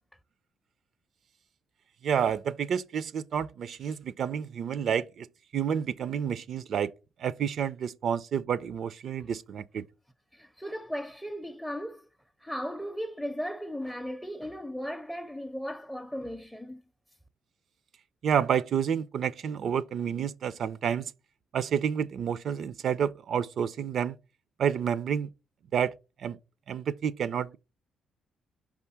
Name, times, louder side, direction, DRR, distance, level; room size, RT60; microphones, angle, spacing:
voice 1, 2.0-5.3 5.5-6.9 7.2-9.9 18.2-21.1 21.5-24.2 24.6-25.3 25.7-25.9 26.2-26.4 26.7-27.6, right 8 dB, 60° right, 0.4 m, -29 dB
voice 2, 10.3-12.1 12.4-16.8, equal, ahead, 0.5 m, -36 dB
5.3 x 3.6 x 5.6 m
cardioid pair, 90°, 0 cm